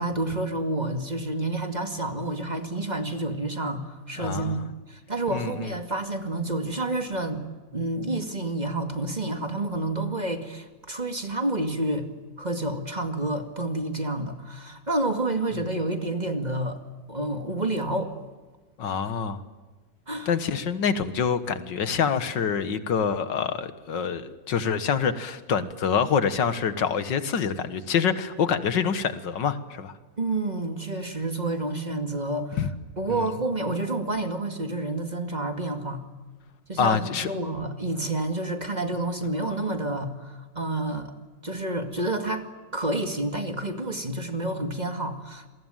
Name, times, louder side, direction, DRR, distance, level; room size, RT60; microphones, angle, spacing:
voice 1, 0.0-7.4 7.7-12.1 12.4-16.8 17.1-18.1 20.1-20.3 30.2-32.6 33.0-36.0 36.7-41.1 41.4-42.5 42.7-45.5, right 2 dB, 25° right, 5 dB, 2.1 m, -29 dB
voice 2, 4.2-4.6 5.3-5.7 18.8-19.4 20.3-29.9 32.6-32.7 33.1-33.3 36.8-37.3, left 7 dB, 90° left, 11 dB, 2.1 m, -26 dB
28.0 x 22.5 x 9.1 m, 1.3 s
omnidirectional pair, 1.9 m